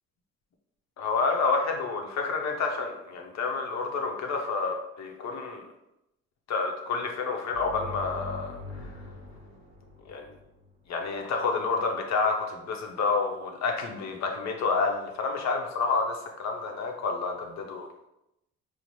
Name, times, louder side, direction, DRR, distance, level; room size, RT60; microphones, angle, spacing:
voice 1, 1.0-5.6 6.5-8.6 10.1-10.3 10.9-18.1, left 4 dB, 65° left, 2 dB, 0.7 m, -29 dB
sound 1, 7.5-11.1, left 2 dB, 25° right, 1.1 m, -42 dB
3.9 x 2.0 x 3.0 m, 0.85 s
cardioid pair, 90°, 30 cm